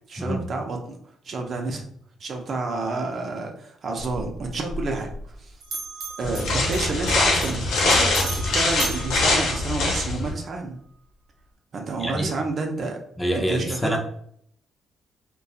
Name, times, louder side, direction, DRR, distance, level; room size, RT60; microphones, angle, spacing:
voice 1, 0.1-1.0 1.2-1.9 2.2-5.1 5.4-5.5 6.2-10.8 11.7-13.0 13.5-14.0, right 3 dB, 55° right, 3 dB, 0.5 m, -29 dB
Bell, 4.0-5.4 5.6-10.1, right 3 dB, 85° right, 0.7 m, -36 dB
sound 1, 6.2-10.3, left 2 dB, 80° left, 0.8 m, -23 dB
voice 2, 12.0-12.3 13.2-14.0, equal, 5° left, 2 dB, 0.4 m, -26 dB
2.6 x 2.3 x 2.3 m, 0.66 s
cardioid pair, 90°, 0 cm